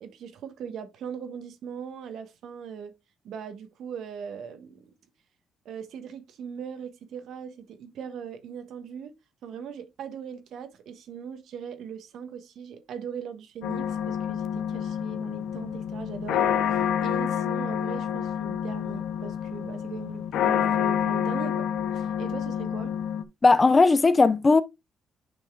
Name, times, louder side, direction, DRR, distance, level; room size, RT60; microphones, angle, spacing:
voice 1, 0.0-2.9 3.2-4.9 5.6-9.1 9.4-21.7 21.9-22.9, right 7 dB, 75° right, 1.2 m, -40 dB
sound 1, 13.6-23.2, left 9 dB, 80° left, 0.6 m, -28 dB
voice 2, 23.4-24.6, left 3 dB, 30° left, 0.7 m, -18 dB
9.6 x 5.5 x 2.3 m
cardioid pair, 90°, 0 cm